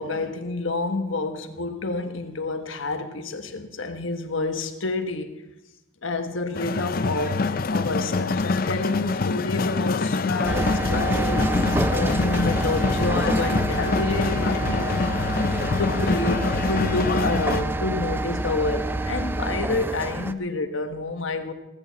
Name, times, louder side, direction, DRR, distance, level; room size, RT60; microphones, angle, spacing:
voice 1, 0.0-5.4 6.0-7.4 7.7-15.2 15.8-21.5, left 3 dB, 75° left, 1.3 m, -28 dB
sound 1, 6.5-17.6, left 4 dB, 45° left, 0.5 m, -26 dB
sound 2, 10.4-20.3, right 1 dB, 10° right, 0.4 m, -27 dB
16.5 x 14.5 x 4.1 m
head